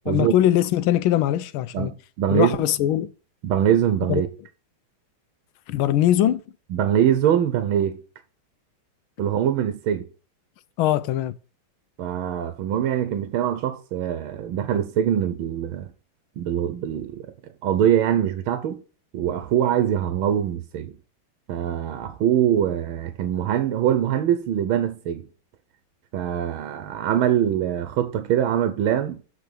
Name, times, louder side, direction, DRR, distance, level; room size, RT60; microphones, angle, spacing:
voice 1, 0.1-1.9 2.3-3.1 4.1-4.2 5.7-6.4 10.8-11.3, left 12 dB, 80° left, 1.5 m, -21 dB
voice 2, 1.7-2.6 3.4-4.3 6.7-8.0 9.2-10.1 12.0-15.9 16.4-17.2 17.6-18.8 19.1-20.9 21.5-25.3 26.1-29.2, right 10 dB, 85° right, 1.6 m, -23 dB
7.2 x 4.6 x 6.4 m
omnidirectional pair, 2.2 m